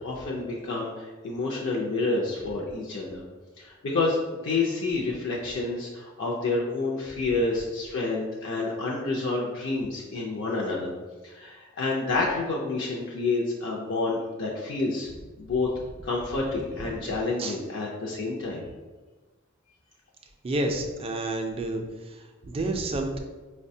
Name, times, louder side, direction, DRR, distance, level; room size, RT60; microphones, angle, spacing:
voice 1, 0.0-3.2 3.6-4.2 4.4-10.9 11.2-15.1 15.4-15.7 16.0-18.6, left 3 dB, 65° left, -3 dB, 0.4 m, -29 dB
voice 2, 16.8-17.6 20.4-23.2, right 2 dB, 30° right, 3 dB, 0.3 m, -31 dB
4.6 x 2.1 x 2.6 m, 1.3 s
head